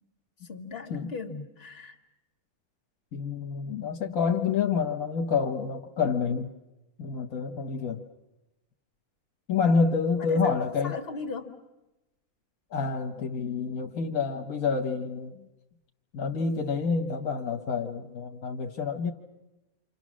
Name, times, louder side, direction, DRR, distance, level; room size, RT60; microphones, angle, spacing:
voice 1, 0.4-2.0 10.2-10.5 10.8-11.6, left 4 dB, 45° left, 3 dB, 2.0 m, -38 dB
voice 2, 3.1-6.5 7.0-8.0 9.5-11.0 12.7-15.5 16.1-19.1, left 5 dB, 70° left, 4 dB, 1.5 m, -28 dB
28.5 x 26.5 x 6.2 m, 1.0 s
omnidirectional pair, 1.5 m